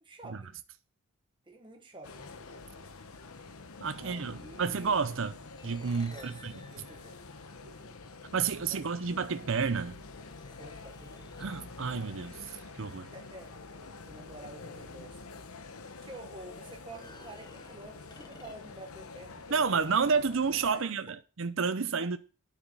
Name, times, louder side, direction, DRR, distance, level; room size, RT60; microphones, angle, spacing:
voice 1, 0.0-0.6 1.4-2.4 3.9-4.8 6.0-7.2 7.6-8.0 8.6-9.0 10.5-11.4 13.0-13.5 13.8-15.3 16.0-19.9 20.6-21.0 22.0-22.1, right 2 dB, 20° right, 1.6 m, -50 dB
sound 1, 2.0-20.7, left 3 dB, 75° left, 1.1 m, -47 dB
voice 2, 3.8-5.4 5.6-6.5 8.3-10.0 11.4-13.1 19.5-22.2, right 5 dB, 60° right, 0.6 m, -30 dB
sound 2, 5.6-8.1 9.3-9.4 10.1-11.7 15.0-15.1 15.5-15.6 16.8-18.9, left 2 dB, 20° left, 0.9 m, -56 dB
9.8 x 7.2 x 5.4 m
head